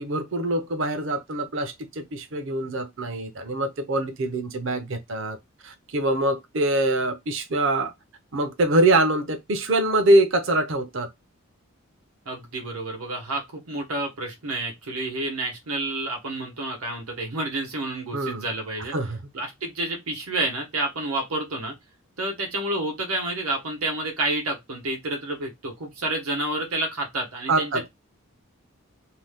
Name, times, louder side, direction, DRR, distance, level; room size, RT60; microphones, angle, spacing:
voice 1, 0.0-5.4 5.6-7.9 8.3-11.1 18.1-18.4 18.9-19.2 27.5-27.9, right 2 dB, 60° right, 0.6 m, -24 dB
voice 2, 12.3-18.9 19.3-21.7 22.2-27.9, right 2 dB, 85° right, 1.0 m, -29 dB
2.8 x 2.2 x 3.4 m
head